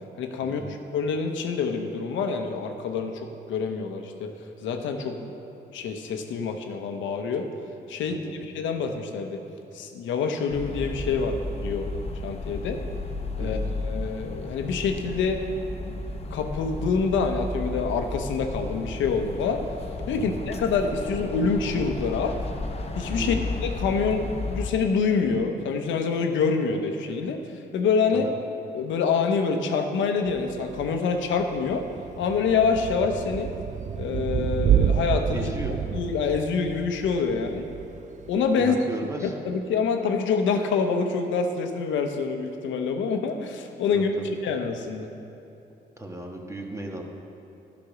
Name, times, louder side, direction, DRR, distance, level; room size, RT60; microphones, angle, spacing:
voice 1, 0.2-4.3 4.6-5.3 5.7-7.5 7.9-8.3 8.5-9.4 9.7-11.9 12.2-12.8 13.4-15.4 15.8-19.6 20.1-22.4 23.0-23.4 23.6-27.4 27.7-28.3 28.7-31.9 32.2-33.5 34.0-35.5 35.9-37.7 38.3-38.8 39.2-44.1 44.4-45.1, left 5 dB, 85° left, 5 dB, 0.9 m, -26 dB
sound 1, 10.5-24.7, left 2 dB, 30° left, 0.8 m, -33 dB
voice 2, 23.2-23.5 28.1-28.3 35.3-35.8 38.6-39.3 43.9-44.3 46.0-47.0, right 2 dB, 15° right, 1 dB, 1.4 m, -35 dB
Thunder / Rain, 30.3-38.5, right 8 dB, 40° right, 0.4 m, -29 dB
11.5 x 5.2 x 6.0 m, 2.8 s
cardioid pair, 75°, 19 cm